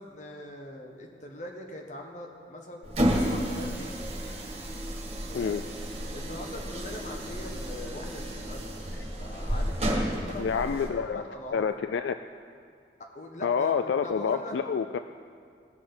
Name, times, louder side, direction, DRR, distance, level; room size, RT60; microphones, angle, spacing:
voice 1, 0.0-2.9 3.2-4.1 5.3-5.6 6.1-8.7 9.2-10.6 11.1-11.6 13.1-13.7 14.0-14.6, left 1 dB, 40° left, 1 dB, 1.2 m, -41 dB
sound 1, 2.8-10.9, equal, 35° right, 1.6 m, -31 dB
voice 2, 10.4-11.2 11.5-12.1 13.4-15.0, left 6 dB, 75° left, 9 dB, 0.3 m, -28 dB
18.5 x 6.3 x 3.8 m, 2.2 s
head